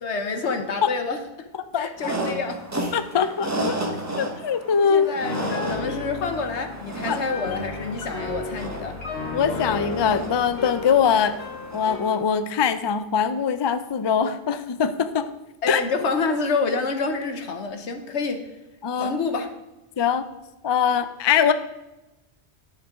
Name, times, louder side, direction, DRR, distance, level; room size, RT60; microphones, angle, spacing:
voice 1, 0.0-1.5 1.8-2.6 4.8-5.4 5.7-9.0 15.6-18.5 18.9-19.5, left 4 dB, 85° left, 7 dB, 1.3 m, -28 dB
voice 2, 1.7-2.1 2.9-3.8 4.2-5.1 7.1-7.2 9.3-11.4 11.7-15.3 15.7-15.8 18.8-19.2 20.0-20.2 20.6-21.5, left 7 dB, 40° left, 11 dB, 0.3 m, -22 dB
sound 1, 2.0-12.3, right 1 dB, 15° right, 1.0 m, -33 dB
Piano, 5.2-12.1, left 4 dB, 65° left, 1.3 m, -33 dB
10.5 x 7.5 x 3.7 m, 1.0 s
omnidirectional pair, 1.1 m